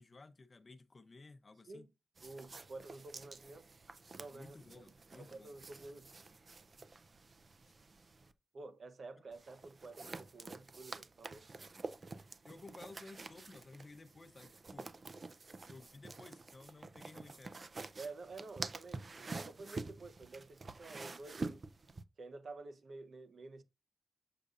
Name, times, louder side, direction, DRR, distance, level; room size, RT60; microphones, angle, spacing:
voice 1, 0.0-1.9 4.3-5.5 12.4-14.9 15.7-17.7, left 3 dB, 35° left, 0.7 m, -55 dB
sound 1, 2.2-8.3 9.3-22.0, right 3 dB, 40° right, 0.4 m, -48 dB
voice 2, 2.2-3.7 4.2-4.9 5.2-6.1 8.5-11.5 18.0-21.7 22.2-23.6, right 3 dB, 60° right, 0.8 m, -50 dB
6.6 x 6.4 x 2.4 m
wide cardioid pair, 145°, 0 cm